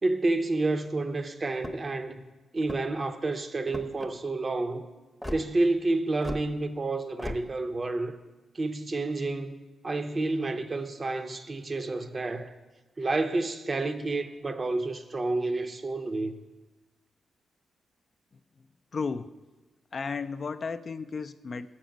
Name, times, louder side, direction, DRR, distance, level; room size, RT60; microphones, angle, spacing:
voice 1, 0.0-2.2 2.5-4.8 5.3-8.1 8.5-9.6 9.8-12.5 13.0-16.4, right 2 dB, 40° right, 0.6 m, -29 dB
sound 1, 1.5-2.0 2.6-3.1 3.7-4.1 5.2-5.4 6.2-6.5 7.2-7.4, left 1 dB, 10° left, 0.7 m, -37 dB
voice 2, 18.9-19.3 19.9-21.7, left 5 dB, 50° left, 0.3 m, -34 dB
6.9 x 6.1 x 5.1 m
supercardioid pair, 50°, 0 cm